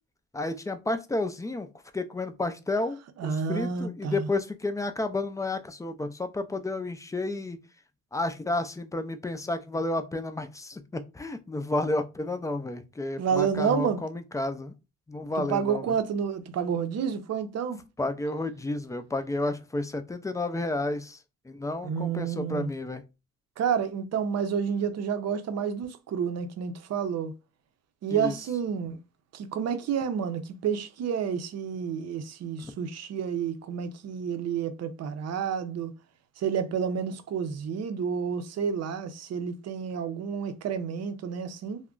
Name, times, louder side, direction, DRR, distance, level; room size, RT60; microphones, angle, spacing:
voice 1, 0.3-1.7 1.9-7.6 8.1-14.7 15.1-15.9 18.0-21.2 21.5-23.0 28.1-28.4, left 2 dB, 10° left, 0.3 m, -31 dB
voice 2, 3.2-4.3 13.2-14.0 15.5-17.8 21.8-22.7 23.6-27.3 28.0-29.0 29.3-35.9 36.4-41.8, right 7 dB, 60° right, 0.6 m, -30 dB
2.3 x 2.1 x 3.7 m
cardioid pair, 90°, 30 cm